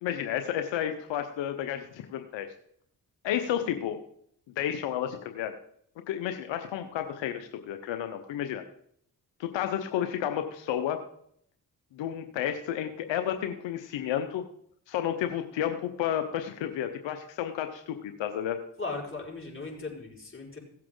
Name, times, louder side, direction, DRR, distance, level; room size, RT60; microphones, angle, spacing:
voice 1, 0.0-2.5 3.2-4.0 4.6-5.5 6.1-8.6 9.4-11.0 11.9-14.4 14.9-18.6, left 10 dB, 80° left, 7 dB, 0.9 m, -31 dB
voice 2, 18.8-20.6, left 3 dB, 30° left, -4 dB, 5.3 m, -37 dB
16.5 x 7.6 x 3.8 m, 0.68 s
supercardioid pair, 40°, 44 cm